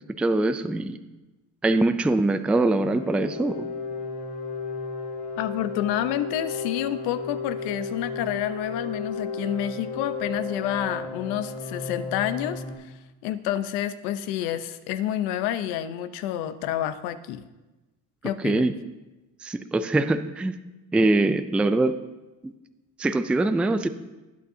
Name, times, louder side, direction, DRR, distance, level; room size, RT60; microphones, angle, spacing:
voice 1, 0.2-1.0 1.6-3.6 18.4-18.7 19.4-20.6 20.9-22.0 22.4-22.5 23.0-23.9, right 2 dB, 5° right, 10 dB, 0.3 m, -23 dB
sound 1, 2.9-12.8, left 4 dB, 35° left, 3.4 m, -34 dB
voice 2, 5.4-12.9 13.2-17.4 18.2-18.7, left 11 dB, 85° left, 11 dB, 0.8 m, -29 dB
20.0 x 8.5 x 2.8 m, 1.1 s
cardioid pair, 115°, 37 cm